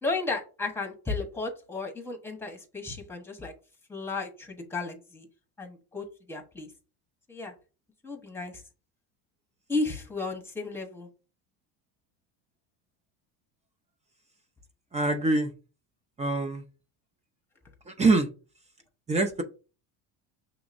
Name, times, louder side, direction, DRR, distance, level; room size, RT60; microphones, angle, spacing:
voice 1, 0.0-3.5 3.9-5.3 5.6-6.7 7.3-7.5 8.0-8.6 9.7-11.1, left 3 dB, 5° left, 2 dB, 1.0 m, -34 dB
voice 2, 14.9-15.5 16.2-16.6 17.9-18.3 19.1-19.4, right 3 dB, 15° right, 7 dB, 0.4 m, -24 dB
6.1 x 2.9 x 2.5 m, 0.34 s
supercardioid pair, 115°, 42 cm